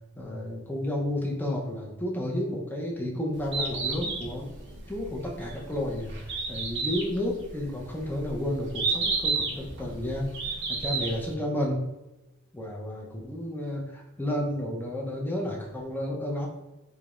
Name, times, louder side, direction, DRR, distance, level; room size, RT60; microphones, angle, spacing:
voice 1, 0.2-4.5 4.9-10.3 10.7-11.8 12.5-16.5, left 1 dB, 10° left, -2 dB, 0.4 m, -31 dB
Bird, 3.3-11.3, right 4 dB, 50° right, 0.5 m, -31 dB
2.3 x 2.0 x 2.9 m, 1.0 s
head